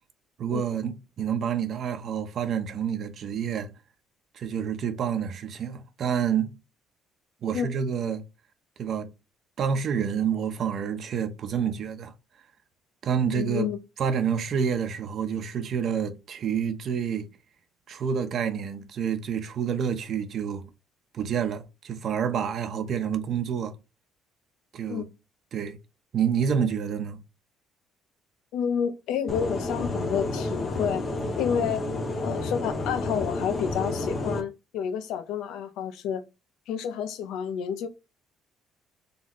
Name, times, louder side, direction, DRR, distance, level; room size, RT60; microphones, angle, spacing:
voice 1, 0.4-3.7 4.3-6.5 7.4-8.2 8.8-9.1 9.6-12.1 13.0-13.7 14.0-17.3 17.9-20.7 21.1-23.7 24.7-25.1 25.5-25.8 26.1-27.2, right 7 dB, 55° right, 0.8 m, -28 dB
voice 2, 13.3-13.8 24.9-25.0 28.5-31.0 31.4-31.8 32.2-36.2 36.7-37.9, left 8 dB, 80° left, 0.6 m, -29 dB
sound 1, 29.3-34.4, left 2 dB, 40° left, 1.0 m, -30 dB
4.1 x 3.3 x 3.0 m
cardioid pair, 100°, 0 cm